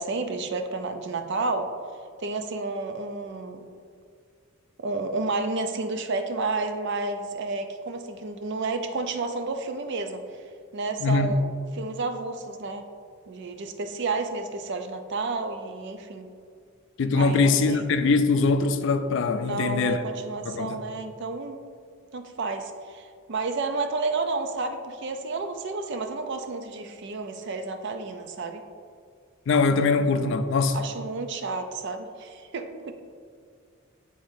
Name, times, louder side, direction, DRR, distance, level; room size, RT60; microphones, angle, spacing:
voice 1, 0.0-1.7 2.2-3.7 4.8-10.2 10.7-11.5 11.8-12.9 13.3-16.3 17.1-17.8 19.4-21.6 22.1-28.6 30.7-32.9, right 3 dB, 60° right, 0.5 m, -31 dB
voice 2, 11.0-11.4 17.0-20.0 20.5-20.8 29.5-30.8, left 4 dB, 60° left, 0.4 m, -22 dB
9.9 x 3.8 x 2.6 m
head